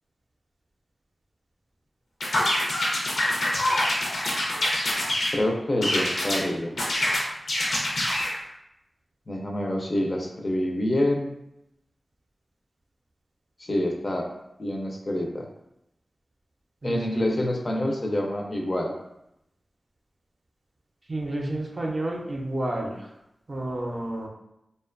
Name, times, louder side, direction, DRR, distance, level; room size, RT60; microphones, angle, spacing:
sound 1, 2.2-5.4 5.8-6.4 6.8-8.3, left 1 dB, 90° left, 0.6 m, -25 dB
voice 1, 5.3-6.8 9.3-11.3 13.6-14.3 14.6-15.5 16.8-18.9, left 1 dB, 40° left, 1 dB, 0.4 m, -27 dB
voice 2, 16.8-17.2 21.1-23.1 23.5-24.3, right 1 dB, 45° right, 0 dB, 0.5 m, -30 dB
2.5 x 2.2 x 2.4 m, 0.84 s
wide cardioid pair, 95°, 0 cm